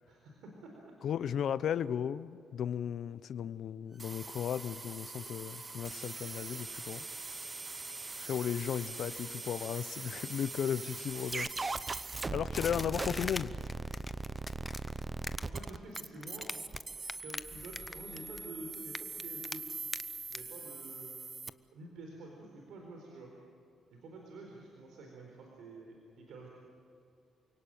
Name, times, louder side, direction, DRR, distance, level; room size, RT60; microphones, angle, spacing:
voice 1, 0.1-0.9 12.5-13.1 15.4-16.5 17.2-19.6 20.3-21.2 21.7-23.3 23.9-26.5, right 2 dB, 80° right, 0 dB, 4.2 m, -49 dB
voice 2, 1.0-7.0 8.2-11.5 12.3-13.5, left 8 dB, 65° left, 16 dB, 0.7 m, -35 dB
sound 1, 4.0-21.5, right 3 dB, 25° right, 0.7 m, -41 dB
sound 2, 12.5-16.8 17.0-18.4 18.7-19.6 19.9-20.0 20.3-20.4, left 3 dB, 20° left, 0.8 m, -40 dB
sound 3, 16.6-18.4, left 1 dB, 10° right, 3.9 m, -62 dB
28.5 x 18.0 x 9.1 m, 2.5 s
cardioid pair, 90°, 0 cm